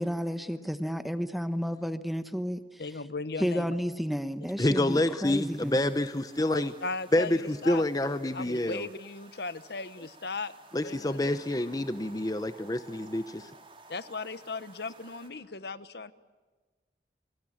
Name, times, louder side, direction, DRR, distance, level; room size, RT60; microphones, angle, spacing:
voice 1, 0.0-2.8 3.4-6.0, equal, ahead, 10 dB, 1.0 m, -32 dB
voice 2, 2.8-3.8 6.5-7.4 7.6-7.8 8.3-11.4 13.9-16.1, left 3 dB, 70° left, 14 dB, 1.1 m, -37 dB
voice 3, 4.6-6.7 7.1-8.9 10.7-13.5, left 1 dB, 20° left, 11 dB, 0.8 m, -28 dB
sound 1, 5.2-15.3, right 3 dB, 30° right, 4.3 m, -55 dB
29.0 x 22.5 x 8.7 m, 1.3 s
head